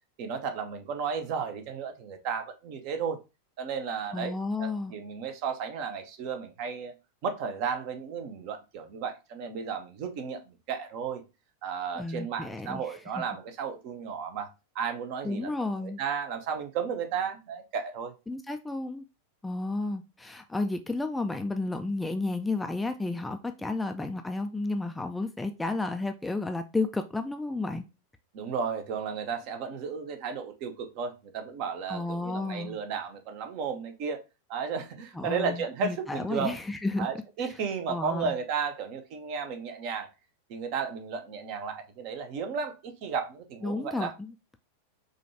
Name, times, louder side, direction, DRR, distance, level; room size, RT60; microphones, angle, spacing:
voice 1, 0.2-3.2 3.6-6.9 7.2-11.2 11.6-14.5 14.7-15.5 15.8-18.1 28.3-34.2 34.5-36.6 37.0-40.1 40.5-44.1, right 6 dB, 45° right, 0.7 m, -34 dB
voice 2, 4.1-4.9 12.0-13.0 15.2-16.0 18.3-19.0 19.4-27.9 31.9-32.8 35.1-37.1 37.4-37.5 37.9-38.3 43.6-44.3, left 2 dB, 5° left, 0.3 m, -32 dB
5.0 x 2.3 x 2.7 m
figure-of-eight pair, 90°, 0 cm